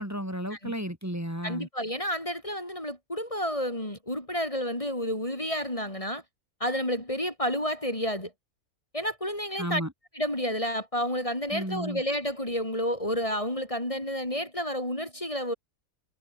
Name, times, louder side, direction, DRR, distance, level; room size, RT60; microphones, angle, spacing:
voice 1, 0.0-1.7 9.6-9.9 11.5-12.0, equal, 10° right, 4.1 m, -33 dB
voice 2, 1.4-6.2 6.6-8.3 8.9-9.8 10.1-15.5, equal, 20° left, 4.5 m, -30 dB
omnidirectional pair, 1.5 m